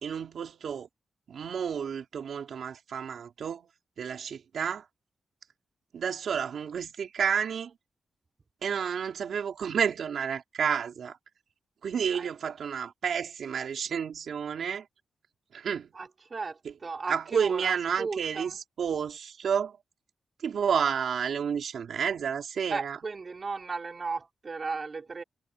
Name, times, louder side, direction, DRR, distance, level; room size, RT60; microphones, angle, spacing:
voice 1, 0.0-0.9 1.3-3.7 4.0-4.8 5.9-7.7 8.6-11.2 11.8-14.8 15.5-15.9 17.1-19.8 20.4-23.0, right 7 dB, 70° right, 3.6 m, -30 dB
voice 2, 15.9-18.6 22.7-25.2, right 4 dB, 35° right, 4.5 m, -35 dB
wide cardioid pair, 155°, 0 cm